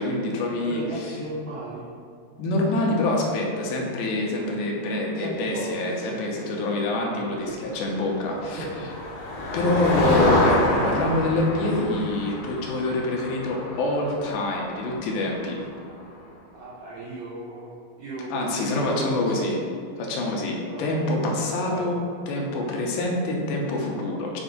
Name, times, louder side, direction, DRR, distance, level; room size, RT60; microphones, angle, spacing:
voice 1, 0.0-1.1 2.4-8.7 9.5-15.6 18.3-19.6 20.0-24.4, left 2 dB, 80° left, -1 dB, 2.6 m, -26 dB
voice 2, 0.7-1.8 5.1-6.5 7.0-7.6 8.6-9.0 9.6-9.8 16.5-17.7 18.0-19.4 20.7-20.8 21.6-21.9, right 2 dB, 85° right, -7 dB, 1.5 m, -36 dB
Motor vehicle (road), 8.1-15.9, left 2 dB, 60° left, 2.2 m, -28 dB
7.1 x 2.6 x 5.1 m, 2.2 s
omnidirectional pair, 4.3 m